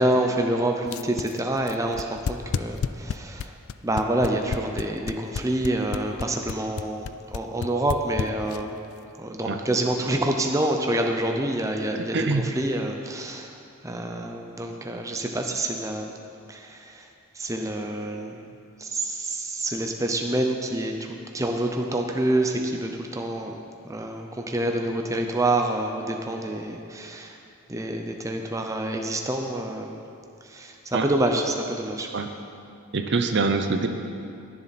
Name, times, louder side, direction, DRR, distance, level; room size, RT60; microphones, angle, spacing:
voice 1, 0.0-3.5 3.8-8.8 9.2-13.5 13.8-16.1 16.5-17.0 17.4-18.4 18.8-23.6 23.8-27.4 27.7-29.9 30.5-32.1, right 1 dB, 15° right, 3 dB, 0.7 m, -27 dB
sound 1, 0.9-8.8, left 6 dB, 70° left, 0.4 m, -30 dB
voice 2, 12.1-12.5 30.9-31.1 32.1-32.3 32.9-33.9, right 3 dB, 50° right, 6 dB, 0.7 m, -24 dB
21.0 x 7.3 x 4.2 m, 2.5 s
head